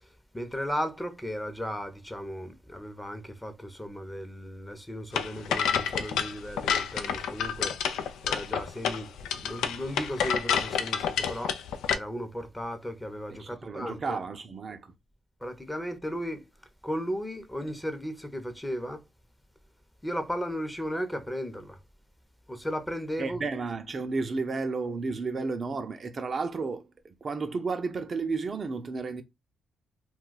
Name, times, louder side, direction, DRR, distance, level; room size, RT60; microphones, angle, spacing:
voice 1, 0.3-7.7 8.2-9.1 9.4-11.5 11.9-14.2 15.4-16.5 16.8-19.0 20.0-21.8 22.5-23.4, equal, 10° left, 0.7 m, -35 dB
sound 1, 5.1-12.0, left 7 dB, 85° left, 0.3 m, -29 dB
voice 2, 13.3-14.9 23.2-29.2, right 4 dB, 50° right, 0.5 m, -32 dB
2.3 x 2.3 x 3.9 m
supercardioid pair, 55°, 0 cm